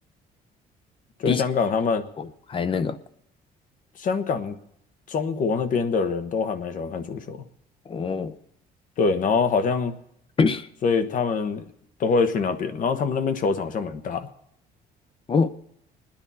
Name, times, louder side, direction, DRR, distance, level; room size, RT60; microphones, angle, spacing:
voice 1, 1.2-2.0 4.0-4.6 5.1-7.4 9.0-9.9 10.8-11.7 12.0-14.3, left 5 dB, 50° left, 9 dB, 1.2 m, -24 dB
voice 2, 2.2-2.9 7.9-8.3 10.4-10.6 15.3-15.5, left 5 dB, 30° left, 13 dB, 0.8 m, -24 dB
27.5 x 10.0 x 4.2 m, 0.75 s
cardioid pair, 110°, 17 cm